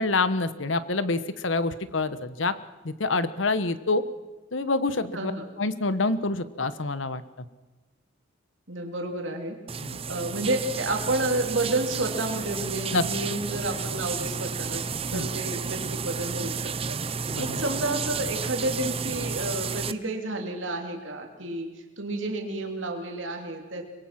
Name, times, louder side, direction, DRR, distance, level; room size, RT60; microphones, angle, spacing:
voice 1, 0.0-2.5 2.8-4.0 4.5-5.3 5.6-7.2 9.8-10.0 12.9-13.0 15.1-15.3 17.3-17.6, left 3 dB, 80° left, 13 dB, 1.2 m, -26 dB
voice 2, 5.1-5.5 8.7-9.6 10.1-14.8 15.1-21.7 22.0-23.9, right 2 dB, 80° right, 3 dB, 3.0 m, -30 dB
sound 1, 9.7-19.9, right 5 dB, 30° right, 0.6 m, -32 dB
24.0 x 22.0 x 6.0 m, 1.2 s
head